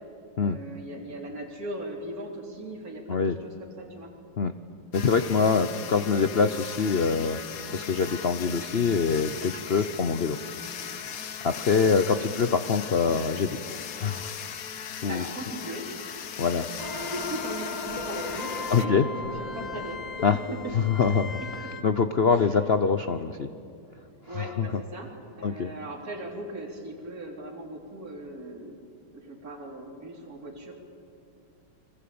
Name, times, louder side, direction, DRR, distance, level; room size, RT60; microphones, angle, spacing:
voice 1, 0.4-4.1 6.0-6.2 15.1-15.9 17.0-20.0 22.3-22.5 24.3-25.1 25.4-28.8 29.1-30.7, right 1 dB, 45° right, -1 dB, 4.1 m, -39 dB
voice 2, 4.9-7.4 7.7-10.4 11.4-13.6 14.0-14.3 15.0-15.2 16.4-16.7 18.7-19.0 20.2-20.4 20.7-21.4 21.8-23.5 24.4-24.7 25.4-25.7, left 5 dB, 70° left, 9 dB, 0.5 m, -24 dB
sound 1, 4.9-18.9, left 8 dB, 50° left, 1.2 m, -38 dB
sound 2, 16.8-21.8, left 3 dB, 25° left, 1.2 m, -36 dB
29.5 x 22.5 x 8.7 m, 2.5 s
omnidirectional pair, 2.3 m